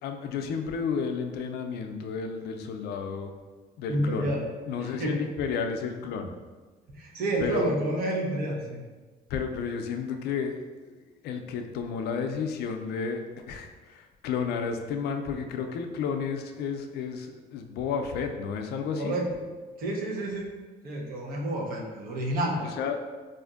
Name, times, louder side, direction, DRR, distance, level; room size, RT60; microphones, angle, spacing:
voice 1, 0.0-3.3 3.8-4.3 4.7-6.3 7.4-7.8 9.3-10.9 11.2-19.1 22.6-23.0, left 6 dB, 75° left, 5 dB, 0.4 m, -32 dB
voice 2, 3.9-4.4 5.0-5.1 6.9-8.8 18.9-19.3 19.8-20.5 20.8-22.7, right 1 dB, 60° right, -2 dB, 0.8 m, -29 dB
4.2 x 2.5 x 2.4 m, 1.3 s
cardioid pair, 110°, 17 cm